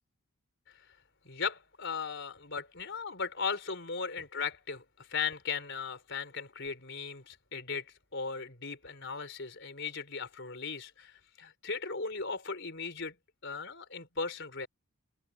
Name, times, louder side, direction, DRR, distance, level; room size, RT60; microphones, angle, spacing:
voice 1, 1.2-13.2 13.4-14.7, left 5 dB, 55° left, 4.2 m, -37 dB
head